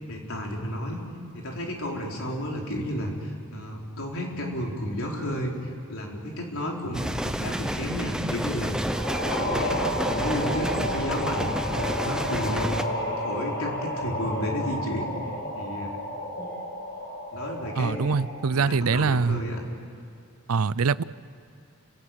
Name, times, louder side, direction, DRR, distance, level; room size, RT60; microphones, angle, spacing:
voice 1, 0.1-1.0 1.3-12.8 13.1-15.1 15.6-16.0 17.3-18.0 18.5-19.6, equal, 70° left, 0 dB, 4.1 m, -32 dB
sound 1, 6.9-12.8, equal, 5° right, 0.7 m, -30 dB
sound 2, 8.8-18.6, left 1 dB, 50° left, 5.4 m, -31 dB
voice 2, 17.8-19.4 20.5-21.0, right 5 dB, 80° right, 19 dB, 0.5 m, -24 dB
29.5 x 16.5 x 9.1 m, 2.5 s
head